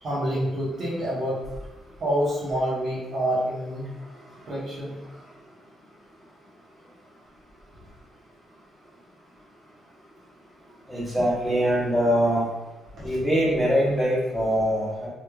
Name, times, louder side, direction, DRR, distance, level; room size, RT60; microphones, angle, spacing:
voice 1, 0.0-1.4 2.0-3.9 4.5-5.0 12.9-13.1, equal, 55° right, -6 dB, 1.2 m, -27 dB
voice 2, 10.9-12.5 13.0-15.1, equal, 10° right, -9 dB, 1.0 m, -23 dB
3.2 x 3.1 x 2.3 m, 1.0 s
cardioid pair, 135°, 0 cm